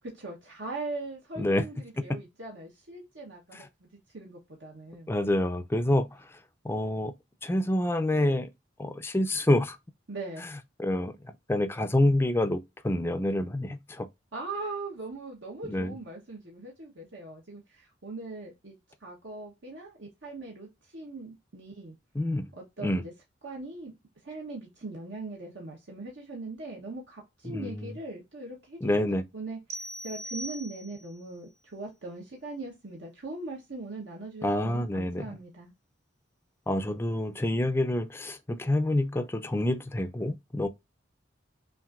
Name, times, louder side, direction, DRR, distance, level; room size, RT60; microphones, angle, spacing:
voice 1, 0.1-3.7 4.1-5.1 10.1-10.5 14.3-18.8 19.0-21.9 22.6-23.1 23.4-23.9 24.2-29.1 29.3-29.6 30.0-35.7, right 2 dB, 70° right, 1.1 m, -40 dB
voice 2, 5.1-6.1 6.6-7.1 7.4-8.5 8.8-9.8 10.8-11.2 11.5-14.1 15.7-16.0 22.1-22.5 22.8-23.0 27.4-28.0 28.8-29.2 34.4-35.4 36.7-40.7, left 1 dB, 10° left, 0.4 m, -27 dB
sound 1, 29.7-31.2, right 1 dB, 35° right, 0.6 m, -40 dB
5.8 x 2.6 x 2.4 m
head